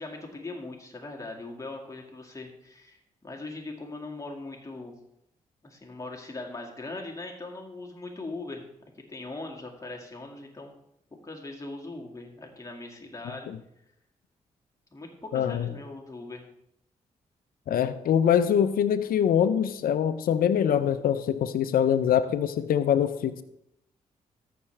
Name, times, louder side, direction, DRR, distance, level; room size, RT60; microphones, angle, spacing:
voice 1, 0.0-4.9 5.6-8.6 9.1-10.7 11.2-13.5 14.9-16.4, left 2 dB, 20° left, -1 dB, 2.1 m, -40 dB
voice 2, 15.3-15.7 17.7-23.4, left 9 dB, 70° left, 11 dB, 0.6 m, -24 dB
13.5 x 5.9 x 3.3 m, 0.78 s
hypercardioid pair, 45°, 16 cm